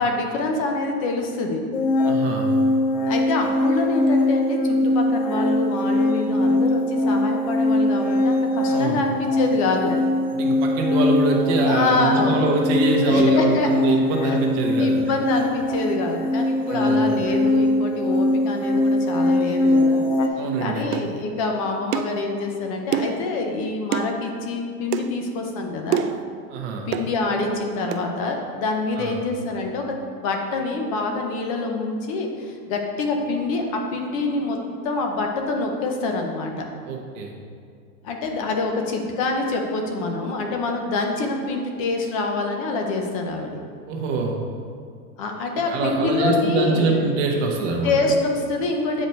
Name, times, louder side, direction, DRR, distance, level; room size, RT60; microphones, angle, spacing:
voice 1, 0.0-1.6 3.1-9.9 11.6-12.5 13.1-13.7 14.8-20.1 20.6-26.0 26.9-29.9 30.2-34.6 34.8-36.7 38.0-43.6 45.2-47.1 47.8-49.1, left 3 dB, 25° left, 3 dB, 0.4 m, -26 dB
sound 1, 1.7-20.3, left 1 dB, 55° left, 0.8 m, -21 dB
voice 2, 2.0-2.5 8.7-9.0 10.3-15.0 16.7-17.1 20.4-20.9 26.5-26.9 29.0-29.2 36.9-37.3 43.9-44.4 45.7-47.9, right 3 dB, 40° right, 1 dB, 1.2 m, -24 dB
sound 2, 20.9-21.1 21.9-22.2 22.9-23.2 23.9-24.1 24.9-25.1 25.9-26.2 26.9-27.1 27.9-28.1, right 9 dB, 75° right, 0.6 m, -25 dB
8.1 x 5.1 x 4.4 m, 2.3 s
supercardioid pair, 160°, 47 cm